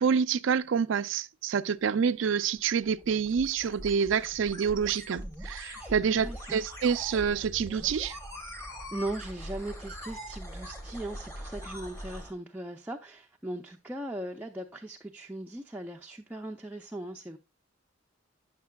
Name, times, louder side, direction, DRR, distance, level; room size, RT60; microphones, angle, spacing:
voice 1, 0.0-8.2, right 6 dB, 70° right, 0.4 m, -27 dB
sound 1, 2.4-12.3, equal, 15° left, 1.1 m, -42 dB
voice 2, 5.8-6.6 8.9-17.4, right 1 dB, 10° right, 0.4 m, -39 dB
9.5 x 6.5 x 2.2 m
head